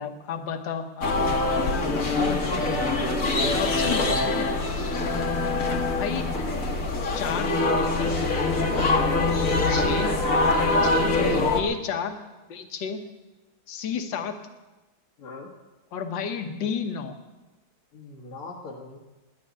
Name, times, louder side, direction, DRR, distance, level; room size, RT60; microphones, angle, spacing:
voice 1, 0.0-2.8 3.5-4.5 5.9-6.3 7.1-7.5 7.8-8.1 9.7-10.1 10.8-11.1 11.5-12.2 12.5-13.0 13.7-14.3 15.9-17.1, left 6 dB, 60° left, 6 dB, 1.7 m, -32 dB
sound 1, 1.0-11.6, left 2 dB, 45° left, 1.3 m, -24 dB
voice 2, 3.3-3.6 5.0-5.3 8.8-9.3 10.9-11.4 15.2-15.5 17.9-19.0, left 3 dB, 80° left, -3 dB, 2.3 m, -40 dB
10.5 x 10.0 x 9.9 m, 1.1 s
omnidirectional pair, 2.4 m